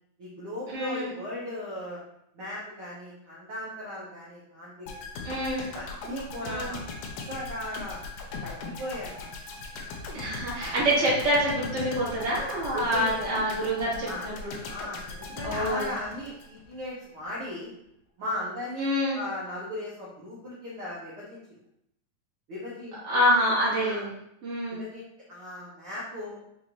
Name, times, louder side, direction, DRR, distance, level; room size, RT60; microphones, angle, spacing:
voice 1, 0.2-2.0 2.3-5.3 5.7-6.8 7.3-8.0 8.4-9.3 9.7-10.0 10.6-10.7 12.7-13.3 14.0-14.2 14.6-17.7 18.2-18.9 19.1-21.6 22.5-23.2 23.8-24.0 24.7-25.0 25.3-26.4, left 1 dB, 75° right, -7 dB, 1.3 m, -37 dB
voice 2, 0.7-1.1 5.2-5.6 6.4-6.8 10.1-14.6 15.4-15.9 18.8-19.2 23.0-24.1 24.4-24.8, equal, 35° right, -7 dB, 1.2 m, -26 dB
sound 1, 4.9-16.9 17.2-17.3, left 3 dB, 85° left, 2.2 m, -39 dB
6.2 x 2.6 x 3.0 m, 0.77 s
omnidirectional pair, 3.8 m